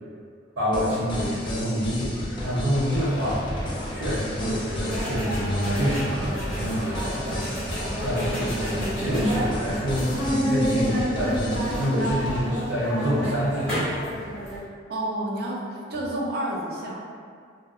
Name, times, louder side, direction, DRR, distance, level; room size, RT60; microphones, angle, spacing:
voice 1, 0.6-3.6 3.9-14.0, equal, 80° right, -12 dB, 0.8 m, -27 dB
sound 1, 0.7-12.4, left 1 dB, 25° left, 0.3 m, -34 dB
sound 2, 2.9-10.4, equal, 90° left, 0.6 m, -36 dB
sound 3, 4.9-14.6, equal, 5° left, 0.7 m, -30 dB
voice 2, 14.9-17.0, right 1 dB, 50° right, -3 dB, 0.4 m, -29 dB
2.6 x 2.0 x 2.3 m, 2.1 s
head